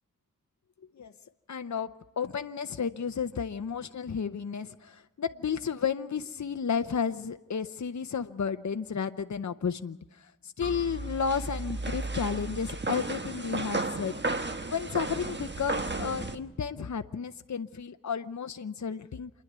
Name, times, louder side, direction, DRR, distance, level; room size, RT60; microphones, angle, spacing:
voice 1, 1.5-14.2 14.6-19.3, left 6 dB, 60° left, 9 dB, 0.7 m, -32 dB
sound 1, 10.6-16.4, right 2 dB, 35° right, 1.4 m, -34 dB
28.0 x 10.5 x 9.4 m, 1.0 s
wide cardioid pair, 50°, 32 cm